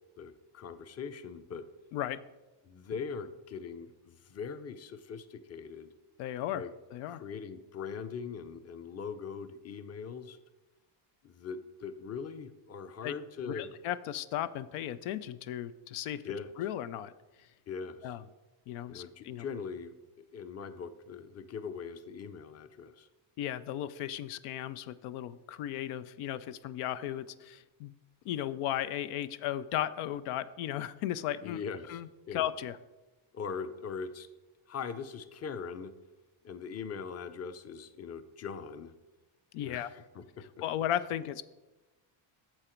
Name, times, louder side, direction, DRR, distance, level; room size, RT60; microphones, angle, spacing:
voice 1, 0.2-1.6 2.6-5.9 6.5-6.7 7.1-10.4 11.2-13.7 16.2-16.5 17.7-18.2 18.9-19.9 20.3-23.1 31.4-32.0 32.3-32.5 33.3-34.3 34.7-35.9 36.4-38.9 39.6-40.2, left 6 dB, 30° left, 11 dB, 0.6 m, -41 dB
voice 2, 6.2-6.6 6.9-7.2 13.0-13.1 13.4-16.2 16.6-17.1 17.4-17.5 18.0-18.2 18.7-19.5 23.4-27.9 28.2-31.6 31.9-32.8 39.5-39.9 40.6-41.4, left 11 dB, 85° left, 14 dB, 0.6 m, -35 dB
8.8 x 7.1 x 4.4 m, 1.1 s
cardioid pair, 100°, 50 cm